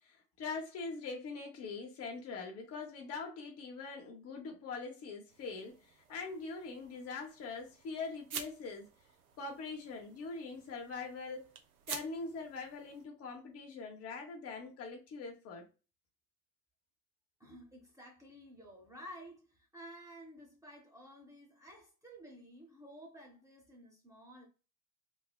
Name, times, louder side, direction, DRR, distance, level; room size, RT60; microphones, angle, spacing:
voice 1, 0.0-8.9 9.4-11.5 11.9-15.6, left 4 dB, 35° left, 0.7 m, -43 dB
sound 1, 5.3-13.1, right 7 dB, 85° right, 0.5 m, -50 dB
voice 2, 17.4-24.5, equal, 10° right, 0.7 m, -53 dB
3.2 x 2.0 x 2.3 m
figure-of-eight pair, 80°, 42 cm